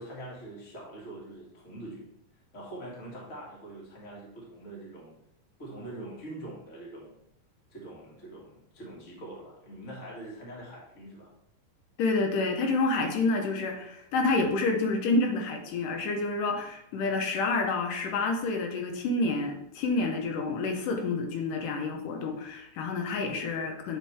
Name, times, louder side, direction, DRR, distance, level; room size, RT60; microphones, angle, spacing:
voice 1, 0.0-2.1 2.5-5.2 5.6-7.2 7.7-11.3, right 1 dB, 30° left, -4 dB, 1.8 m, -43 dB
voice 2, 12.0-24.0, left 3 dB, 85° left, 3 dB, 2.4 m, -28 dB
8.8 x 4.5 x 3.4 m, 0.76 s
omnidirectional pair, 3.7 m